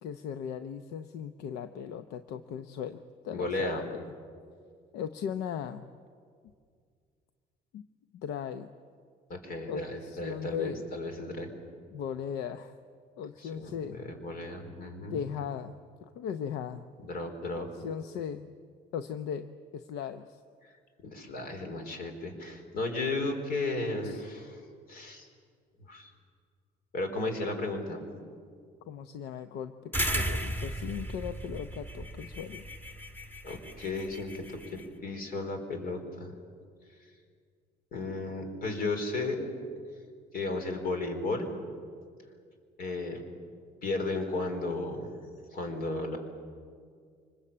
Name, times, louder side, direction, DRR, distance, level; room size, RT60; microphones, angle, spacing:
voice 1, 0.0-4.1 4.9-5.9 7.7-7.9 8.1-8.7 9.7-10.8 11.9-12.7 13.2-14.0 15.1-16.8 17.5-18.5 18.9-20.4 24.0-24.2 28.9-32.7, left 8 dB, 85° left, 10 dB, 0.8 m, -38 dB
voice 2, 3.3-3.8 9.3-11.5 13.4-15.2 17.0-17.7 21.0-24.6 24.9-25.3 25.9-26.1 26.9-28.0 33.4-36.3 37.9-39.5 40.3-41.5 42.8-43.2 43.8-45.1 45.5-46.2, left 2 dB, 60° left, 6 dB, 4.4 m, -34 dB
sound 1, 29.9-34.8, right 1 dB, 10° left, 1.9 m, -35 dB
25.0 x 21.0 x 8.7 m, 2.1 s
cardioid pair, 110°, 17 cm